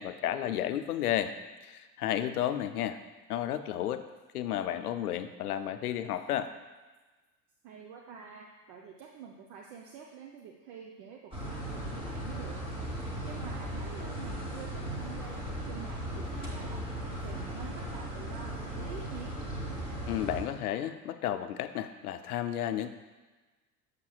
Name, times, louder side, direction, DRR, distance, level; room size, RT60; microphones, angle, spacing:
voice 1, 0.0-1.3 1.6-3.0 3.3-4.1 4.3-6.5 20.1-22.9, left 11 dB, 70° left, 11 dB, 0.5 m, -32 dB
voice 2, 7.6-12.6 13.2-16.9 17.2-19.3, right 7 dB, 45° right, 0 dB, 0.6 m, -47 dB
sound 1, 11.3-20.4, right 1 dB, 10° right, 1.3 m, -37 dB
6.9 x 6.6 x 2.3 m, 1.3 s
figure-of-eight pair, 75°, 47 cm